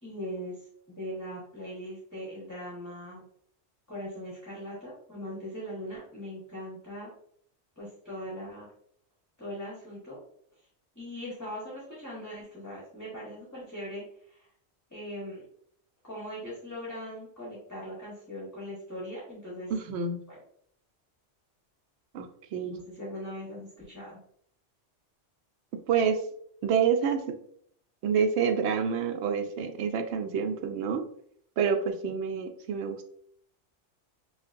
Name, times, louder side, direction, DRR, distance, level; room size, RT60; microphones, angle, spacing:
voice 1, 0.0-3.2 3.9-7.1 7.8-8.7 9.4-10.2 10.9-14.5 14.9-15.4 16.0-19.7 20.3-20.4 22.6-24.2, equal, 15° left, -7 dB, 1.2 m, -40 dB
voice 2, 19.7-20.2 22.1-22.7 25.9-26.2 26.6-27.3 28.0-31.0 31.6-33.1, right 6 dB, 75° right, 6 dB, 0.8 m, -28 dB
5.1 x 2.5 x 2.5 m, 0.65 s
omnidirectional pair, 1.2 m